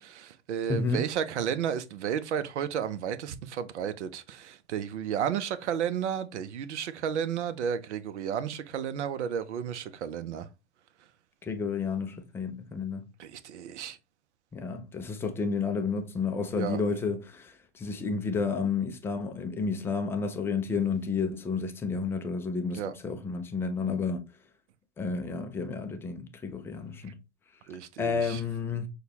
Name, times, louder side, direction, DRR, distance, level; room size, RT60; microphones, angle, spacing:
voice 1, 0.0-10.5 13.2-14.0 16.5-16.8 22.7-22.9 27.7-28.4, right 8 dB, 75° right, 0.6 m, -32 dB
voice 2, 0.7-1.1 11.5-13.0 14.5-24.2 25.0-27.2 28.0-28.9, left 5 dB, 5° left, 0.3 m, -31 dB
6.4 x 2.2 x 2.8 m
hypercardioid pair, 110°, 35 cm